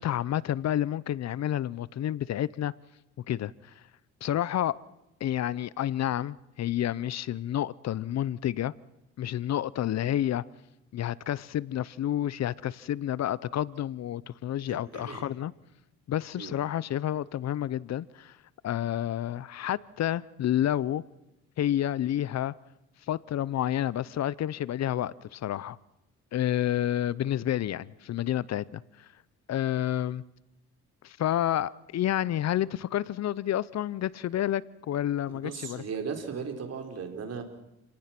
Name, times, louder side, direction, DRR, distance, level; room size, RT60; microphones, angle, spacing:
voice 1, 0.0-2.7 3.3-3.5 4.2-4.8 5.2-8.7 9.2-10.4 10.9-15.5 16.1-18.4 18.6-21.0 21.6-22.5 23.1-25.8 26.3-29.1 29.5-30.2 31.0-35.8, left 11 dB, 60° left, 0.7 m, -29 dB
voice 2, 14.7-15.3 16.4-16.6 35.3-37.4, right 6 dB, 55° right, 4.3 m, -37 dB
29.0 x 18.5 x 6.0 m
cardioid pair, 90°, 30 cm